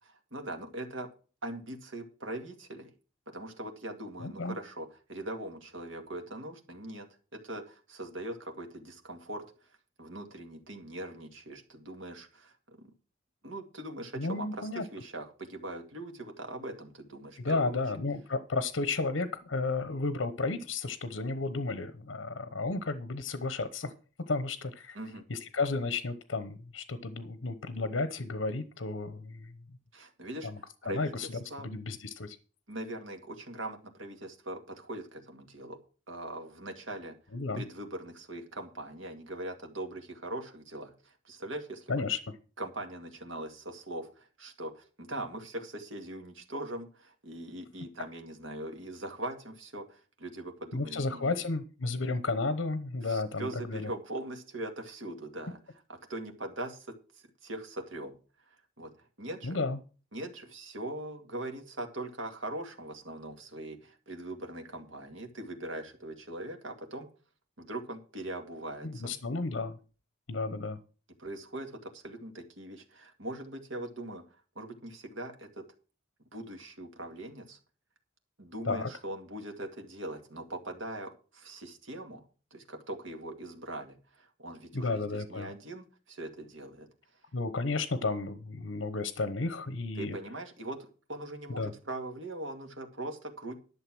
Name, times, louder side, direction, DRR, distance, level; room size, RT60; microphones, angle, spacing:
voice 1, 0.0-1.1 1.4-2.9 3.3-9.7 10.0-12.9 13.4-17.8 24.9-25.2 29.9-30.5 30.8-31.7 32.7-35.8 36.1-37.2 37.5-42.0 42.6-51.3 53.0-55.6 56.1-58.2 58.5-59.6 60.1-67.1 67.6-69.2 71.2-74.2 74.6-75.6 76.3-77.6 78.4-82.2 82.5-86.9 90.0-93.6, right 1 dB, 85° right, 5 dB, 2.2 m, -41 dB
voice 2, 4.2-4.6 14.2-14.8 17.4-23.9 24.3-25.0 25.3-29.5 30.4-30.6 30.9-32.4 37.3-37.6 41.9-42.2 50.7-53.9 59.4-59.8 68.8-69.8 70.3-70.8 78.7-78.9 84.7-85.5 87.3-90.2 91.5-91.7, left 3 dB, 80° left, 12 dB, 0.9 m, -33 dB
11.5 x 6.7 x 6.2 m, 0.37 s
head